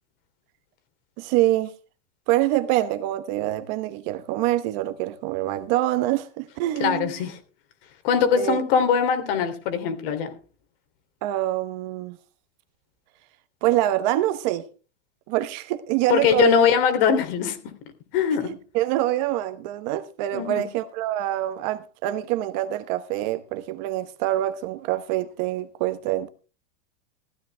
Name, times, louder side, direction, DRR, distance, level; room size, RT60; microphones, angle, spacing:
voice 1, 1.2-1.7 2.3-7.1 8.3-8.6 11.2-12.2 13.6-14.7 15.3-16.7 18.4-26.3, right 14 dB, 40° right, 1.0 m, -25 dB
voice 2, 6.8-7.4 8.0-10.3 16.1-17.7 18.1-18.6 20.3-20.7, left 7 dB, 50° left, 3.1 m, -22 dB
15.0 x 13.5 x 3.4 m
supercardioid pair, 175°, 35 cm